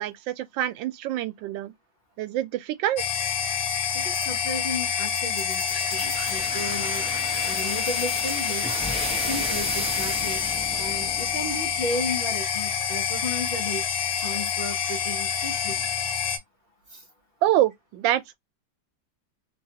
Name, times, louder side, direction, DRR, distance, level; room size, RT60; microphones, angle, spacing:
voice 1, 0.0-1.7 2.2-3.0 17.4-18.3, right 13 dB, 90° right, 1.3 m, -26 dB
sound 1, 3.0-16.4, left 8 dB, 65° left, 1.1 m, -27 dB
voice 2, 3.9-7.1 7.4-8.7 9.3-10.4 10.8-13.8 14.2-15.8 16.9-17.0, left 1 dB, 50° left, 0.7 m, -34 dB
sound 2, 5.4-12.0, equal, 10° right, 0.3 m, -34 dB
3.1 x 2.3 x 2.7 m
omnidirectional pair, 2.0 m